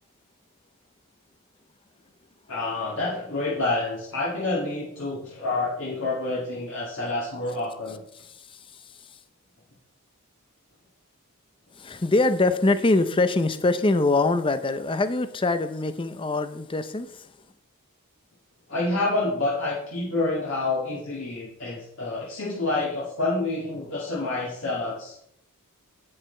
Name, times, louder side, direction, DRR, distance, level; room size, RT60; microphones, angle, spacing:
voice 1, 2.5-8.0 18.7-25.1, left 2 dB, 60° left, 1.9 m, -28 dB
voice 2, 8.3-8.8 11.8-17.3, left 2 dB, 25° left, 0.5 m, -24 dB
8.9 x 7.8 x 4.4 m
head